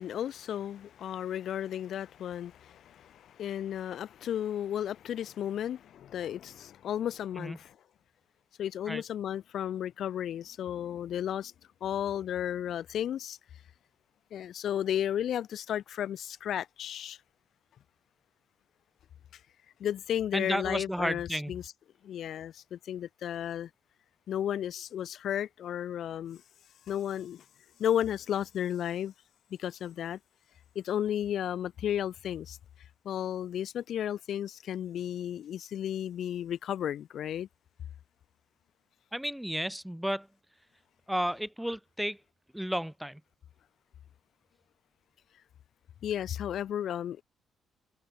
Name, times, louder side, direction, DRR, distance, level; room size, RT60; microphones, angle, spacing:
voice 1, 0.0-7.8 8.6-11.5 11.8-13.4 14.3-17.2 19.8-21.7 22.0-23.7 24.3-26.4 26.9-27.4 27.8-29.1 29.6-30.2 30.8-32.6 33.0-37.5 46.0-47.2, left 10 dB, 65° left, 0.5 m, -33 dB
voice 2, 20.3-21.5 39.1-40.3 41.1-42.2 42.5-43.2, equal, 5° right, 0.5 m, -32 dB
cardioid pair, 85°, 0 cm